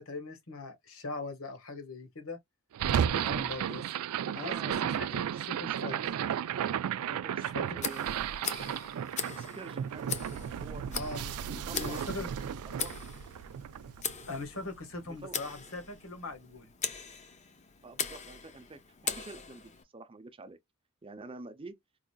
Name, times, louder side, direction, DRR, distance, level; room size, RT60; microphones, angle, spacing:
voice 1, 0.0-2.4 2.9-3.8 4.3-6.0 7.3-7.8 11.0-12.5 14.3-16.7, left 3 dB, 65° left, 1.2 m, -41 dB
sound 1, 2.7-15.0, right 9 dB, 90° right, 0.3 m, -34 dB
voice 2, 4.3-5.4 5.8-6.0 7.1-8.3 9.4-11.1 11.5-12.3 12.7-13.1 15.1-15.4 17.8-20.6 21.0-21.8, right 3 dB, 25° right, 0.6 m, -47 dB
Tick, 7.8-19.8, left 7 dB, 30° left, 0.6 m, -40 dB
4.8 x 2.5 x 2.2 m
head